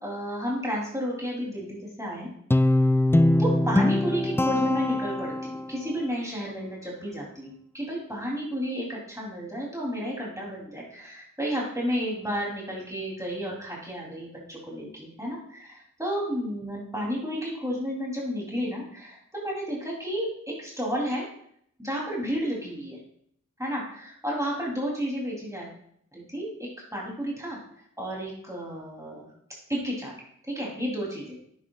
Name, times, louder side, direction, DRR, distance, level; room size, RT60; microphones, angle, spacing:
voice 1, 0.0-2.3 3.4-21.2 21.8-23.0 23.6-25.7 26.1-27.6 28.0-29.2 29.7-30.1 30.4-31.4, equal, 10° right, -4 dB, 3.2 m, -32 dB
Guitar, 2.5-5.8, left 1 dB, 10° left, 0.4 m, -22 dB
9.9 x 8.1 x 2.4 m, 0.67 s
cardioid pair, 40°, 31 cm